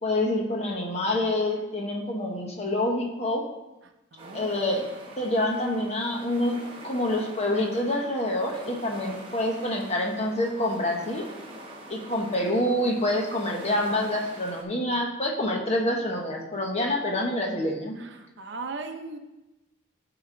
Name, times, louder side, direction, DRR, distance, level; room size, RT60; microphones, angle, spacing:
voice 1, 0.0-3.4 4.3-4.9 5.2-11.2 11.9-18.0, left 1 dB, 30° left, 0 dB, 1.1 m, -27 dB
voice 2, 4.1-4.5 18.0-19.2, right 3 dB, 60° right, 6 dB, 0.7 m, -38 dB
sound 1, 4.2-14.6, right 1 dB, 25° right, 1.1 m, -45 dB
11.0 x 4.9 x 3.8 m, 1.0 s
head